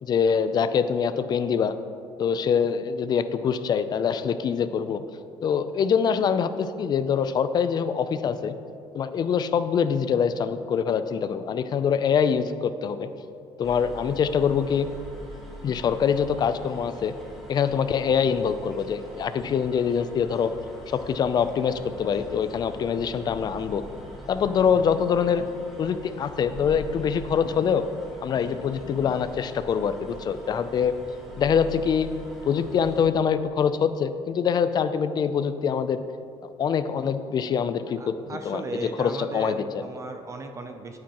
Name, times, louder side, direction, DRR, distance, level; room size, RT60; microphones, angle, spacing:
voice 1, 0.0-1.7 2.2-5.0 5.4-8.5 8.9-13.1 13.6-14.9 15.6-17.1 17.5-20.5 20.9-23.8 24.3-25.5 25.8-27.9 28.2-30.9 31.4-32.1 32.5-36.0 36.6-39.8, left 7 dB, 40° left, 12 dB, 0.4 m, -24 dB
sound 1, 13.6-33.1, equal, ahead, 1.6 m, -43 dB
voice 2, 38.0-41.0, right 3 dB, 25° right, 6 dB, 0.5 m, -36 dB
9.4 x 9.3 x 3.0 m, 2.5 s
cardioid pair, 145°, 11 cm